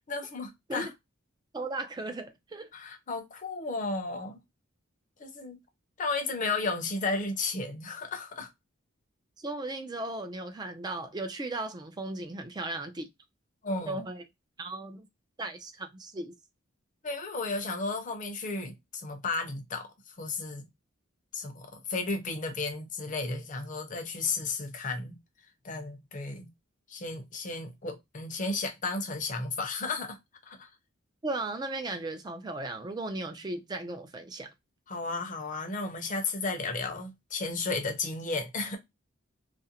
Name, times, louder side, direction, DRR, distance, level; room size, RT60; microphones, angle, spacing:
voice 1, 0.1-0.9 2.7-4.4 5.2-5.6 6.0-8.5 13.6-14.0 17.0-19.9 20.2-20.7 21.3-25.2 25.6-26.5 26.9-30.2 30.5-30.7 34.9-38.8, left 3 dB, 40° left, 0.6 m, -33 dB
voice 2, 1.5-2.7 9.4-13.1 13.9-14.2 14.6-15.1 15.4-16.3 31.2-34.5, right 2 dB, 20° right, 0.4 m, -36 dB
2.4 x 2.1 x 2.7 m
head